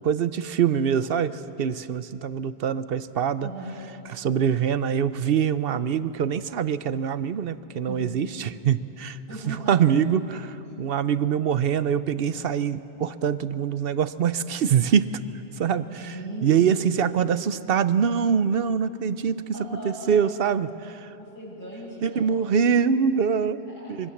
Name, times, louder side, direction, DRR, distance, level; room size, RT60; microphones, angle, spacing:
voice 1, 0.0-3.5 4.1-9.2 9.5-15.2 15.6-16.1 16.4-19.5 19.8-21.1 22.0-23.6 23.9-24.1, right 7 dB, 60° right, 14 dB, 0.8 m, -24 dB
voice 2, 3.4-3.8 7.8-8.2 9.3-9.9 15.9-17.0 19.5-20.4 21.2-22.4 23.6-24.1, right 1 dB, 45° left, -8 dB, 8.4 m, -38 dB
25.5 x 23.5 x 7.2 m, 2.9 s
omnidirectional pair, 1.2 m